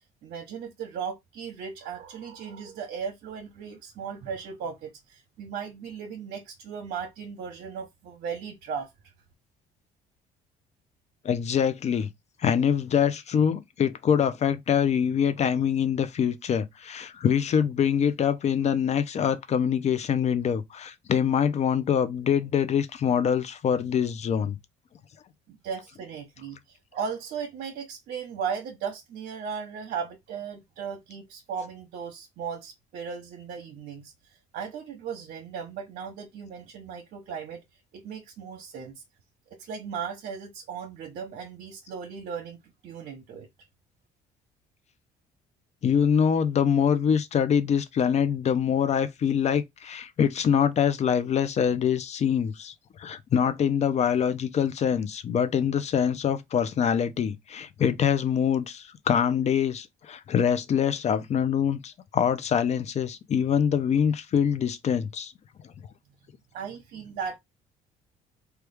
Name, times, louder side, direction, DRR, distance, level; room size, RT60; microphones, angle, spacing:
voice 1, 0.2-8.9 25.5-37.6 37.9-39.0 39.6-43.5 66.5-67.4, right 6 dB, 65° right, 0.9 m, -37 dB
voice 2, 11.2-12.1 12.4-24.6 45.8-52.7 53.0-65.3, left 8 dB, 40° left, 0.5 m, -24 dB
3.0 x 2.3 x 3.3 m
cardioid pair, 110°, 17 cm